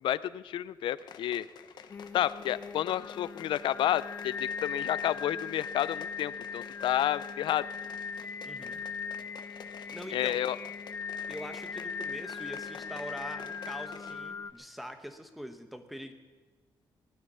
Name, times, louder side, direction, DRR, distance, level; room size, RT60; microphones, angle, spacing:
voice 1, 0.0-1.5 2.1-7.7 10.1-10.6, left 12 dB, 85° left, 18 dB, 0.5 m, -30 dB
sound 1, 1.0-14.3 14.6-14.7, left 8 dB, 60° left, 0.9 m, -50 dB
Singing, 1.9-14.5, left 6 dB, 30° left, 0.4 m, -39 dB
voice 2, 8.4-8.8 9.9-10.4 11.3-16.1, equal, ahead, 7 dB, 1.1 m, -43 dB
18.0 x 12.0 x 5.6 m, 1.3 s
wide cardioid pair, 175°, 8 cm